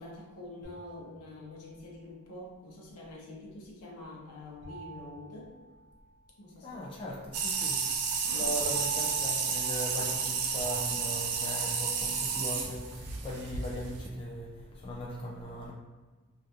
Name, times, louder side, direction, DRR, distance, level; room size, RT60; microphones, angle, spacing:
voice 1, 0.0-5.5 6.4-7.3 8.2-8.7, left 2 dB, 80° left, -3 dB, 0.7 m, -46 dB
sound 1, 0.6-1.8 4.6-6.2 8.6-12.2 12.6-13.5, right 4 dB, 55° right, 0.7 m, -46 dB
voice 2, 6.6-8.0 8.3-15.7, equal, 25° left, -3 dB, 0.3 m, -39 dB
sound 2, 7.3-14.1, right 5 dB, 75° right, 0.4 m, -31 dB
2.4 x 2.2 x 2.6 m, 1.3 s
head